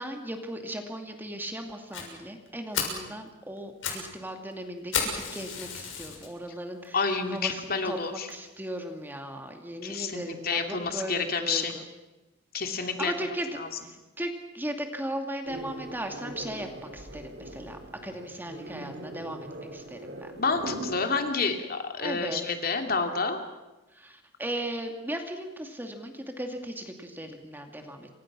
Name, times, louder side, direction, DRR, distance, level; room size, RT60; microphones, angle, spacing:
voice 1, 0.0-7.0 7.3-11.8 12.8-13.5 13.8-20.3 22.0-22.4 23.9-28.1, right 1 dB, 10° right, 4 dB, 2.4 m, -37 dB
Fire, 1.9-2.1 2.5-2.6 2.7-3.0 3.6-4.1 4.3-4.4 4.9-6.3 6.8-6.9 7.5-7.6 7.9-8.0 8.3-8.4, left 6 dB, 75° left, 6.7 m, -32 dB
voice 2, 6.9-8.3 9.8-11.8 12.5-13.1 13.5-13.7 20.4-23.4, left 4 dB, 50° left, 5 dB, 2.8 m, -29 dB
sound 1, 15.5-21.3, right 1 dB, 55° right, 2.7 m, -41 dB
28.0 x 25.0 x 6.2 m, 1.1 s
head